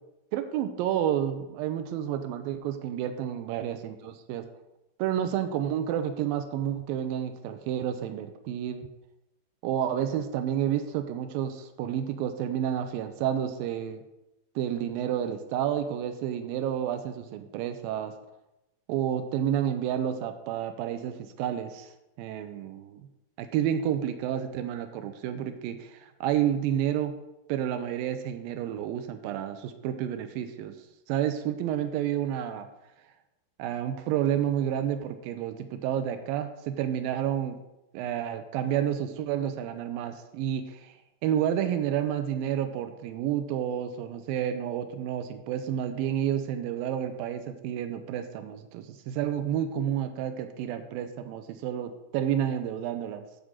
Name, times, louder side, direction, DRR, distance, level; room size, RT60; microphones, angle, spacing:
voice 1, 0.3-4.4 5.0-8.9 9.6-14.0 14.6-18.1 18.9-21.9 22.2-23.0 23.4-27.1 27.5-30.8 31.1-32.7 33.6-37.6 37.9-41.0 41.2-53.3, right 10 dB, 80° right, 8 dB, 2.1 m, -30 dB
12.5 x 5.3 x 7.7 m, 0.92 s
omnidirectional pair, 5.0 m